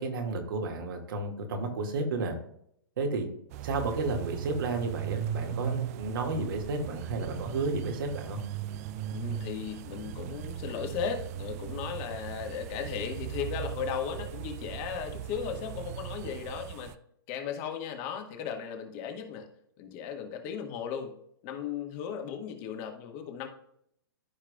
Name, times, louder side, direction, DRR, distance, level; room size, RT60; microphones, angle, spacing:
voice 1, 0.0-2.4 3.0-3.3 3.6-8.4, right 3 dB, 65° right, 3 dB, 2.0 m, -32 dB
sound 1, 3.5-16.9, right 10 dB, 40° right, 0.4 m, -38 dB
voice 2, 9.1-16.9 17.3-19.5 19.8-21.1 21.4-23.5, left 7 dB, 40° left, 4 dB, 1.7 m, -36 dB
14.5 x 4.8 x 2.3 m, 0.71 s
hypercardioid pair, 130°, 12 cm